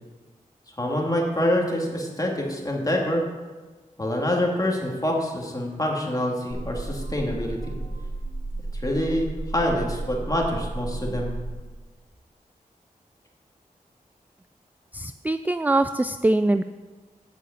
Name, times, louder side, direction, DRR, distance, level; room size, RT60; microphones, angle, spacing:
voice 1, 0.8-3.3 4.0-7.7 8.7-11.3, left 1 dB, 25° left, -1 dB, 2.6 m, -26 dB
sound 1, 6.5-11.5, right 2 dB, 70° right, 2.5 m, -33 dB
voice 2, 14.9-16.6, right 2 dB, 10° right, 10 dB, 0.3 m, -23 dB
8.4 x 6.2 x 8.3 m, 1.3 s
cardioid pair, 50°, 15 cm